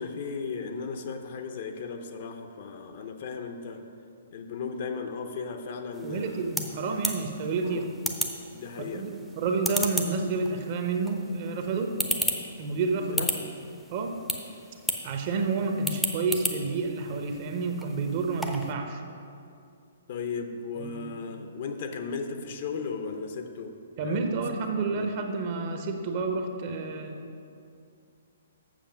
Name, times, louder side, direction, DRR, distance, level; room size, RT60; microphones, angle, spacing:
voice 1, 0.0-3.8 4.3-6.5 7.6-7.9 8.5-9.0 13.1-13.5 20.1-24.4 24.9-25.1, left 5 dB, 45° left, 6 dB, 0.7 m, -36 dB
sound 1, 5.9-18.7, equal, ahead, 0.6 m, -35 dB
voice 2, 6.0-7.9 8.9-11.9 12.6-13.2 13.9-14.2 15.0-19.0 20.8-21.1 24.0-27.2, right 4 dB, 40° right, 5 dB, 0.8 m, -29 dB
7.6 x 6.9 x 5.3 m, 2.5 s
figure-of-eight pair, 120°, 0 cm